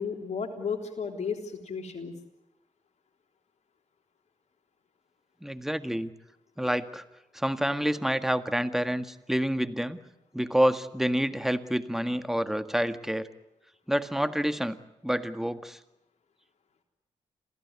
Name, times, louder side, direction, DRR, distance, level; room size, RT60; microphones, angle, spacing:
voice 1, 0.0-2.1, left 6 dB, 60° left, 2 dB, 3.6 m, -33 dB
voice 2, 5.4-6.1 6.6-7.0 7.3-10.0 10.3-13.3 13.9-14.8 15.0-15.8, equal, 5° right, 10 dB, 1.8 m, -28 dB
27.0 x 16.0 x 9.7 m, 0.93 s
supercardioid pair, 40°, 13 cm